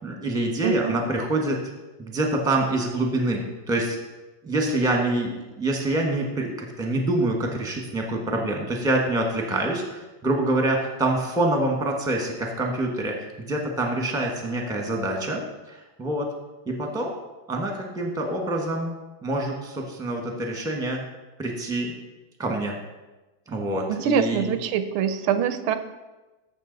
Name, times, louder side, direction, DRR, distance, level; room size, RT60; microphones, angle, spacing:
voice 1, 0.0-1.6 2.0-4.0 4.4-15.4 15.7-16.3 16.7-17.2 17.5-18.9 19.2-21.0 21.4-21.9 22.4-22.8 23.5-24.5, right 2 dB, ahead, 1 dB, 1.0 m, -26 dB
voice 2, 0.6-1.0 24.0-25.8, right 7 dB, 85° right, 10 dB, 1.6 m, -24 dB
14.0 x 6.1 x 4.0 m, 1.1 s
omnidirectional pair, 2.3 m